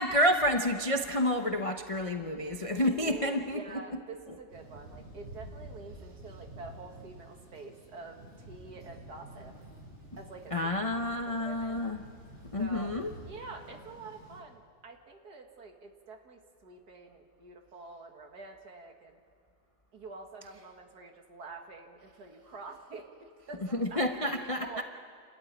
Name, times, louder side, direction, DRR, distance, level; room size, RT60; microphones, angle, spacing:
voice 1, 0.0-3.8 10.5-12.0 12.5-13.1 23.7-24.8, left 1 dB, 35° left, 4 dB, 0.5 m, -29 dB
voice 2, 2.7-9.5 10.2-11.9 12.6-13.0 13.3-19.2 19.9-23.1 23.5-24.8, right 3 dB, 60° right, 3 dB, 2.3 m, -47 dB
Thunder, 4.5-14.4, right 1 dB, 35° right, 6.2 m, -50 dB
28.0 x 13.5 x 10.0 m, 2.2 s
omnidirectional pair, 2.0 m